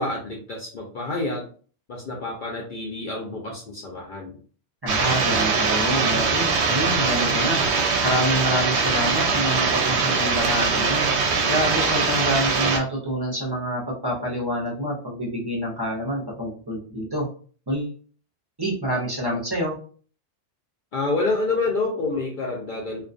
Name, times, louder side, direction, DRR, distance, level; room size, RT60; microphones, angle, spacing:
voice 1, 0.0-1.5 1.9-4.4 20.9-23.0, left 3 dB, 55° left, -1 dB, 0.6 m, -28 dB
voice 2, 4.8-7.6 8.0-11.1 11.5-17.3 17.7-18.0 18.6-19.8, equal, 25° right, -3 dB, 0.5 m, -27 dB
sound 1, 4.9-12.8, right 4 dB, 70° right, 0.8 m, -22 dB
2.4 x 2.2 x 2.5 m, 0.42 s
omnidirectional pair, 1.2 m